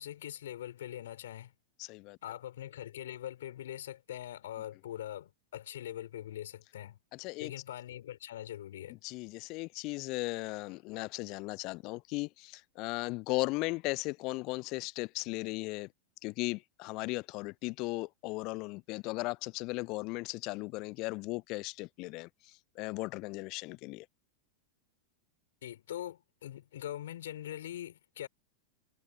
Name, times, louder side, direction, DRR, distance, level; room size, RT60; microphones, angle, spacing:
voice 1, 0.0-1.5 2.2-7.0 7.4-9.0 25.6-28.3, left 12 dB, 60° left, 5.7 m, -42 dB
voice 2, 1.8-2.2 7.1-7.5 9.0-15.9 16.2-22.3 22.8-24.1, left 24 dB, 40° left, 0.6 m, -37 dB
figure-of-eight pair, 90°, 0 cm